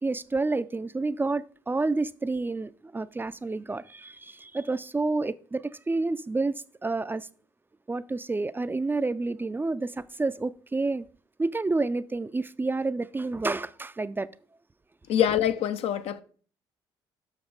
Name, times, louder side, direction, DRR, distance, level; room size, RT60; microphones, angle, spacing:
voice 1, 0.0-6.5 6.8-7.3 7.9-11.1 11.4-14.3 15.2-15.3, right 3 dB, 20° right, 0.4 m, -29 dB
voice 2, 15.1-16.2, left 10 dB, 70° left, 0.6 m, -25 dB
7.1 x 6.0 x 3.9 m
hypercardioid pair, 55°, 11 cm